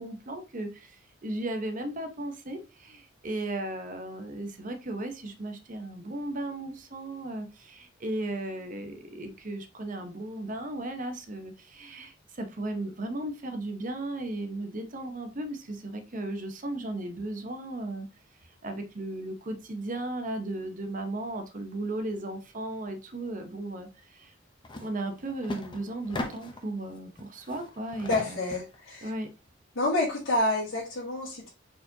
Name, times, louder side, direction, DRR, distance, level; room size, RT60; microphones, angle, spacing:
voice 1, 0.0-18.1 18.6-24.3 24.8-28.4 29.0-29.3, right 1 dB, 40° right, 6 dB, 0.8 m, -36 dB
sound 1, 24.6-24.9 25.2-26.7 27.2-28.8, left 2 dB, 25° left, 0.7 m, -38 dB
voice 2, 28.1-29.1 29.8-31.5, left 2 dB, 85° left, -6 dB, 1.6 m, -28 dB
4.4 x 4.2 x 2.7 m, 0.30 s
head